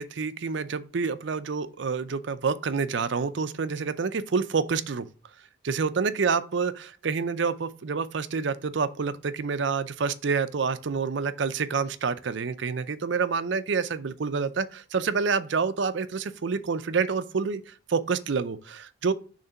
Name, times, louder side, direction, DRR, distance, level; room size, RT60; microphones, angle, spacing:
voice 1, 0.0-5.1 5.6-19.1, right 5 dB, 60° right, 0.5 m, -28 dB
6.5 x 3.2 x 5.7 m
head